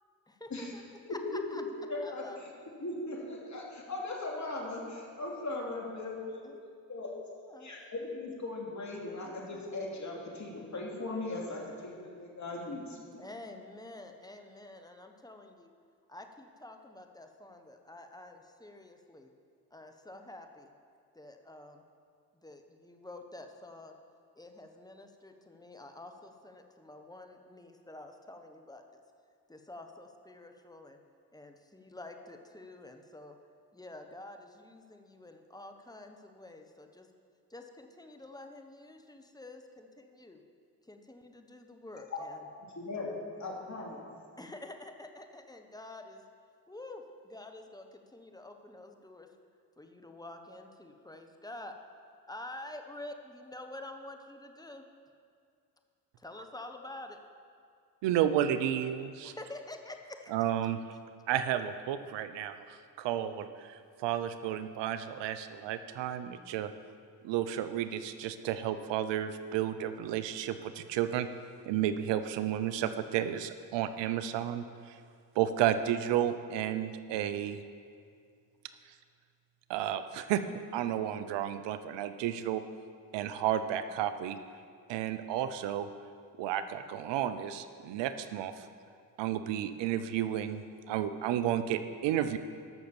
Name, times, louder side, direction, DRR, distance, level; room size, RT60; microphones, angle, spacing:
voice 1, 0.3-1.2 1.5-1.6 2.0-2.6 6.4-6.6 7.5-7.7 13.2-15.7 16.1-19.3 19.7-20.7 21.1-21.8 22.4-24.0 24.4-29.0 29.5-31.0 31.3-33.4 33.7-37.1 37.5-40.4 40.8-42.4 44.4-46.2 46.7-49.3 49.8-51.8 52.3-54.8 56.2-57.2 59.2-60.5, left 2 dB, 10° left, 5 dB, 1.3 m, -48 dB
voice 2, 1.1-2.2 2.8-6.5 6.9-7.1 7.6-13.2 42.0-42.2 42.7-43.1 43.3-44.1, left 2 dB, 40° left, -2 dB, 3.0 m, -38 dB
voice 3, 58.0-59.3 60.3-61.0 61.3-66.7 67.2-71.3 71.7-75.0 75.3-77.6 79.7-80.4 80.7-82.6 83.1-84.4 84.9-85.9 86.4-88.7 89.2-92.4, right 10 dB, 75° right, 11 dB, 0.8 m, -32 dB
12.5 x 6.4 x 7.1 m, 2.2 s
supercardioid pair, 60°, 44 cm